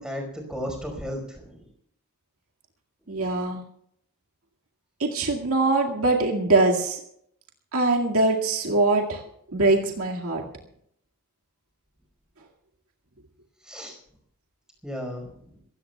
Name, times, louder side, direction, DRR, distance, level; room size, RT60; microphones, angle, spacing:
voice 1, 0.0-1.6 3.1-3.3 13.6-13.9 14.8-15.3, equal, 5° right, 2 dB, 5.1 m, -35 dB
voice 2, 3.1-3.6 5.0-7.0 7.7-9.2 9.5-10.4, right 2 dB, 75° right, 0 dB, 2.1 m, -22 dB
27.0 x 16.5 x 2.4 m, 0.70 s
head